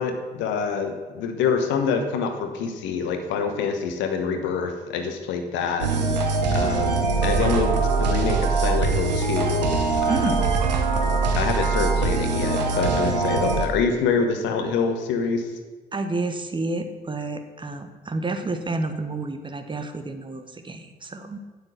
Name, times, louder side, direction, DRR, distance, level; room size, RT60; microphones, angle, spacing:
voice 1, 0.0-5.9 6.5-9.7 10.0-10.3 11.3-15.4, left 5 dB, 60° left, 6 dB, 1.1 m, -26 dB
sound 1, 5.8-13.7, right 4 dB, 80° right, 0.9 m, -22 dB
voice 2, 10.1-10.4 15.9-21.4, right 2 dB, 25° right, 7 dB, 1.1 m, -30 dB
8.8 x 8.0 x 6.3 m, 1.3 s
figure-of-eight pair, 45°, 21 cm